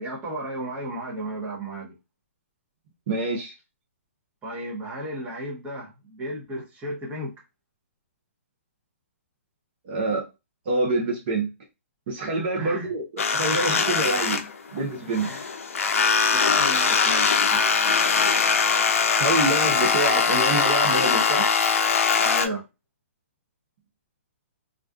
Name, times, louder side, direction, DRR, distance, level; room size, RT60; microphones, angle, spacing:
voice 1, 0.0-1.9 4.4-7.3 12.6-12.9 14.0-14.1 15.2-15.6 16.3-17.6 22.2-22.7, right 1 dB, 15° right, 0.9 m, -34 dB
voice 2, 3.1-3.5 9.8-10.2 10.7-11.5 12.1-14.4 14.7-15.2 19.2-21.5, right 2 dB, 45° right, 0.7 m, -26 dB
sound 1, 13.2-14.8 15.1-22.5, left 5 dB, 70° left, 0.4 m, -21 dB
2.5 x 2.3 x 2.3 m
hypercardioid pair, 140°, 8 cm